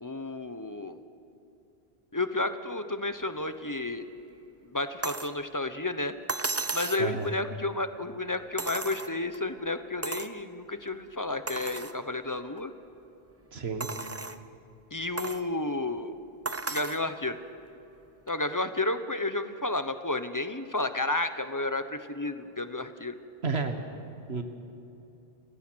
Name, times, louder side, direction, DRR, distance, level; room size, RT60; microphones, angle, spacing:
voice 1, 0.0-1.0 2.1-4.0 4.7-6.1 6.7-12.7 14.9-16.1 16.7-17.4 18.3-23.2, left 2 dB, 20° left, 10 dB, 0.9 m, -31 dB
sound 1, 5.0-5.4 6.3-7.1 8.6-9.4 10.0-10.4 10.9-11.0 11.5-12.0 12.6-12.7 13.8-14.4 15.2-15.5 16.5-17.0 18.3-18.4, right 3 dB, 20° right, 0.5 m, -34 dB
voice 2, 7.0-7.3 13.5-13.9 23.4-23.8 24.3-24.4, right 4 dB, 80° right, 6 dB, 1.7 m, -31 dB
30.0 x 18.0 x 6.3 m, 2.9 s
omnidirectional pair, 1.1 m